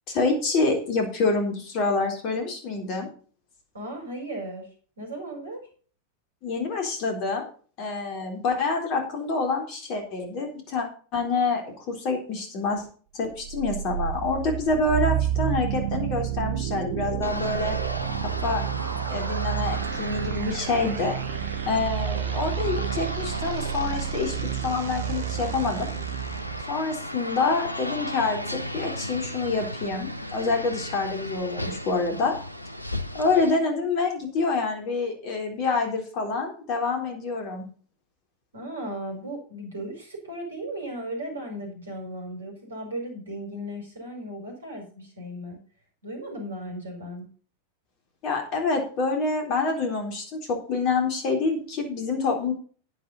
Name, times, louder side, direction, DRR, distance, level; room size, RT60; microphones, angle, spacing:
voice 1, 0.1-3.1 6.4-7.5 7.8-10.9 11.1-12.9 13.1-17.8 18.2-18.6 19.1-21.1 21.7-24.4 24.6-25.9 26.7-32.4 33.1-37.7 48.2-52.5, left 3 dB, 40° left, 4 dB, 3.9 m, -27 dB
voice 2, 3.7-4.7 5.0-5.7 38.5-45.6 46.0-47.3, right 1 dB, 70° right, 3 dB, 5.3 m, -36 dB
sound 1, 13.4-26.6, right 12 dB, 50° right, 0.7 m, -30 dB
sound 2, 17.2-33.5, equal, 90° left, 0.8 m, -35 dB
11.5 x 9.8 x 4.2 m, 0.41 s
figure-of-eight pair, 90°, 0 cm